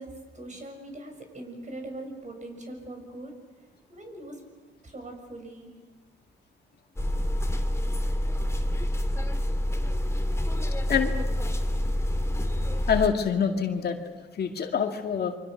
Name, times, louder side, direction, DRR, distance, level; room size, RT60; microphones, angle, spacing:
voice 1, 0.0-3.3 3.9-4.4 4.8-5.7, right 1 dB, 35° right, 3 dB, 6.7 m, -41 dB
sound 1, 7.0-13.1, left 1 dB, 15° left, 2.5 m, -27 dB
voice 2, 12.9-14.0 14.4-15.4, left 7 dB, 55° left, 4 dB, 2.2 m, -25 dB
29.0 x 24.5 x 6.6 m, 1.3 s
cardioid pair, 90°, 20 cm